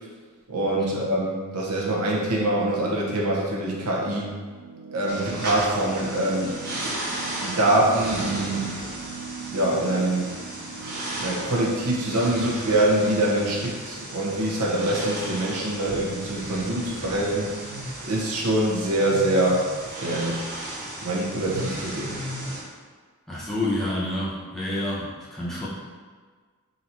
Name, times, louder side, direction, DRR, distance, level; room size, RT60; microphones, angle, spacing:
voice 1, 0.5-4.3 4.9-6.7 7.4-8.7 9.5-10.3 11.2-17.5 18.0-20.5 21.0-22.1, right 1 dB, 85° right, -3 dB, 0.9 m, -24 dB
sound 1, 4.3-15.3, right 6 dB, 65° right, 0.4 m, -41 dB
sound 2, 5.1-22.6, right 1 dB, 45° right, 1.1 m, -35 dB
voice 2, 23.3-25.7, left 1 dB, ahead, -8 dB, 0.8 m, -28 dB
4.0 x 2.8 x 4.3 m, 1.5 s
head